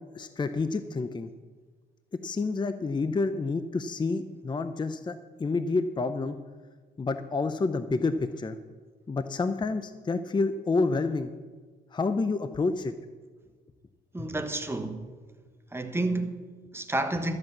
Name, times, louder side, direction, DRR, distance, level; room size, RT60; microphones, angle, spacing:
voice 1, 0.1-1.3 2.1-6.4 7.0-8.6 9.1-11.3 11.9-12.9 14.2-14.3, left 3 dB, 25° left, 0.6 m, -29 dB
voice 2, 14.1-15.1 15.7-17.4, right 2 dB, 10° right, 1.3 m, -30 dB
13.0 x 8.0 x 7.2 m
cardioid pair, 90°, 20 cm